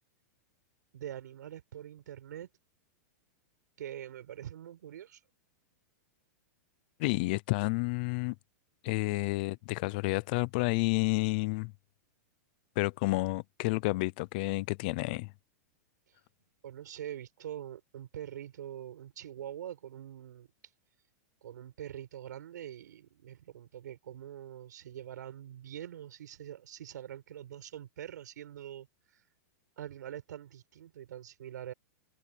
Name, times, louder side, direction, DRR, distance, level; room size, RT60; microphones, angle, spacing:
voice 1, 0.9-2.5 3.8-5.2 9.1-9.4 16.1-16.2 16.6-20.5 21.4-29.3 29.8-31.7, right 11 dB, 90° right, 7.7 m, -44 dB
voice 2, 7.0-8.3 8.8-11.7 12.8-15.3, left 24 dB, 30° left, 0.5 m, -30 dB
supercardioid pair, 180°, 9 cm